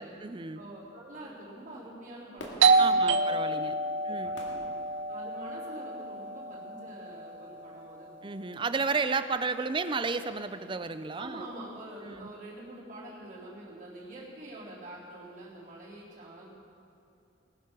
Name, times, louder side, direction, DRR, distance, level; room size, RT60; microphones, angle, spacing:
voice 1, 0.0-0.6 2.8-3.8 4.0-4.4 8.2-11.4 12.0-12.3, right 4 dB, 25° right, 11 dB, 0.5 m, -32 dB
voice 2, 0.5-3.2 3.9-4.6 5.1-8.1 11.2-16.5, right 1 dB, 40° right, -8 dB, 3.7 m, -46 dB
Fireworks, 2.4-5.7 6.3-6.4, left 1 dB, 80° left, 2.1 m, -48 dB
Doorbell, 2.6-8.0, right 3 dB, 80° right, 0.6 m, -28 dB
19.5 x 7.7 x 6.1 m, 2.7 s
head